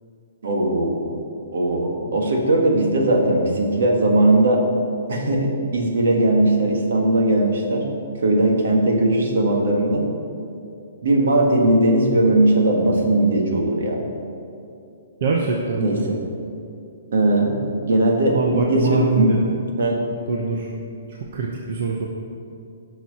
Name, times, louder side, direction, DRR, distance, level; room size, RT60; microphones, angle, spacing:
voice 1, 0.4-1.1 1.5-4.6 5.1-7.8 8.2-10.0 11.0-14.0 15.8-16.2 17.1-17.6 17.8-19.3 19.8-20.0, right 1 dB, 60° right, 0 dB, 2.0 m, -19 dB
voice 2, 15.2-16.0 18.3-19.6 20.3-20.7 21.3-22.0, right 4 dB, 40° right, -1 dB, 0.9 m, -24 dB
15.5 x 6.1 x 4.2 m, 2.6 s
hypercardioid pair, 175°, 0 cm